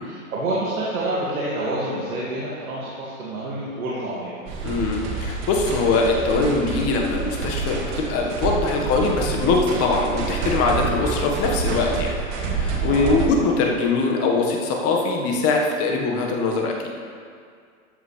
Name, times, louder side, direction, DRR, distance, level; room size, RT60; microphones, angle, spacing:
voice 1, 0.0-4.4 12.9-13.2, right 1 dB, 80° right, -7 dB, 2.4 m, -28 dB
sound 1, 4.5-13.3, right 4 dB, 45° right, 2.0 m, -28 dB
voice 2, 4.6-16.9, left 3 dB, 35° left, 0 dB, 1.6 m, -22 dB
13.5 x 8.0 x 3.4 m, 2.1 s
hypercardioid pair, 120°, 41 cm